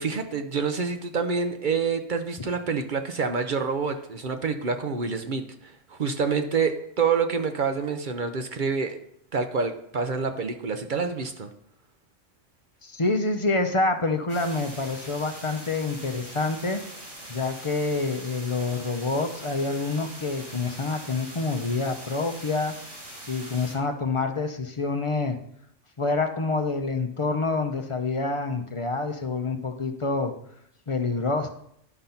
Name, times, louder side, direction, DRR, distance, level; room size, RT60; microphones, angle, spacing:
voice 1, 0.0-9.0 9.3-11.5, right 5 dB, 50° right, 7 dB, 0.7 m, -27 dB
voice 2, 12.8-16.8 17.3-22.7 23.3-25.4 26.0-30.3 30.9-31.5, left 3 dB, 35° left, 6 dB, 0.6 m, -27 dB
sound 1, 14.3-23.7, right 1 dB, 80° right, 2.9 m, -42 dB
11.0 x 4.0 x 5.7 m, 0.72 s
omnidirectional pair, 1.2 m